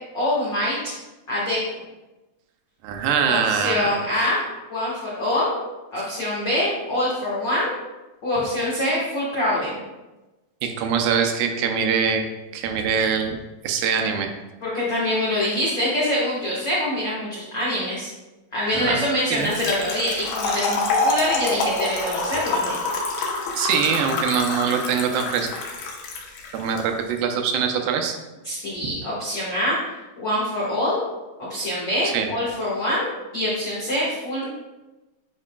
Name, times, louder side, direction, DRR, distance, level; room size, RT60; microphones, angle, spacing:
voice 1, 0.1-0.9 1.3-1.6 3.3-4.4 4.7-5.5 5.9-7.7 8.2-9.8 14.6-18.1 18.5-22.8 28.4-29.8 30.2-31.0 31.4-34.6, left 1 dB, 65° left, -7 dB, 1.1 m, -25 dB
voice 2, 2.8-3.9 10.6-12.2 12.5-13.4 13.6-14.3 18.7-19.0 19.3-19.5 23.6-25.5 26.5-28.2 28.8-28.9 32.0-32.3, right 7 dB, 80° right, 4 dB, 2.3 m, -23 dB
Trickle dribble / Fill (with liquid), 19.3-26.8, left 3 dB, 85° left, 2.9 m, -27 dB
9.6 x 5.3 x 2.2 m, 1.1 s
omnidirectional pair, 4.3 m